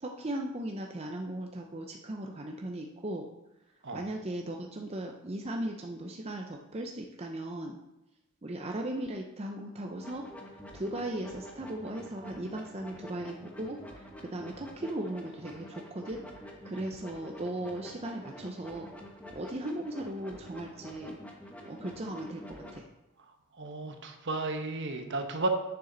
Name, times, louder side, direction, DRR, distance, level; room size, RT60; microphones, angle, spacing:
voice 1, 0.0-3.3 3.9-7.8 8.4-10.3 10.7-16.2 16.6-18.9 19.3-21.2 21.7-22.8, right 1 dB, 30° right, 2 dB, 0.6 m, -37 dB
sound 1, 10.0-22.8, equal, 5° left, 1.1 m, -48 dB
voice 2, 23.5-25.5, right 2 dB, 55° right, 5 dB, 1.0 m, -33 dB
9.6 x 6.9 x 3.9 m, 0.93 s
head